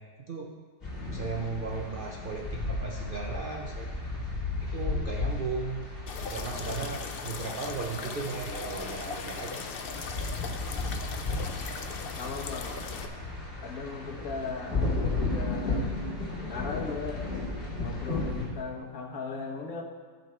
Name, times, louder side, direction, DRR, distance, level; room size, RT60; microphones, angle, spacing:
sound 1, 0.8-18.5, left 3 dB, 30° left, 2.4 m, -34 dB
voice 1, 1.1-3.9 4.6-5.8 6.3-9.7, right 4 dB, 65° right, 1 dB, 0.5 m, -36 dB
sound 2, 6.1-13.1, left 5 dB, 75° left, 0.5 m, -39 dB
voice 2, 12.2-12.7 13.6-14.8 15.2-15.9 16.5-17.2 17.8-19.8, left 4 dB, 55° left, 2 dB, 1.4 m, -37 dB
14.5 x 5.7 x 4.4 m, 1.5 s
omnidirectional pair, 1.9 m